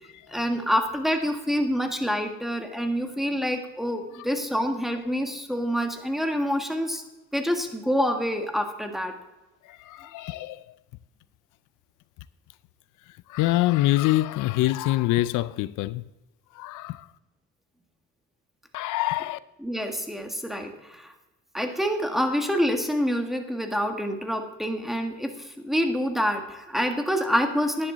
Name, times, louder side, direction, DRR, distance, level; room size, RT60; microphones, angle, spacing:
voice 1, 0.3-7.0 7.3-9.1 19.6-21.1 21.5-27.9, equal, ahead, 1.7 m, -27 dB
voice 2, 9.6-10.7 13.3-16.0 16.5-17.1 18.7-19.4, left 17 dB, 85° left, 0.5 m, -25 dB
11.0 x 10.5 x 3.9 m
cardioid pair, 90°, 30 cm